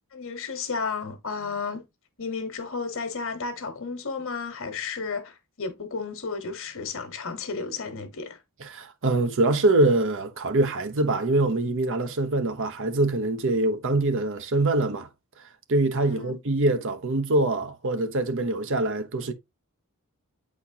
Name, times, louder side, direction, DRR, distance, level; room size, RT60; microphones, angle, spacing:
voice 1, 0.1-1.9 2.2-8.4 16.0-16.4, left 4 dB, 60° left, 1.3 m, -33 dB
voice 2, 8.6-15.1 15.7-19.3, right 2 dB, 60° right, 0.8 m, -24 dB
8.4 x 4.3 x 2.8 m
head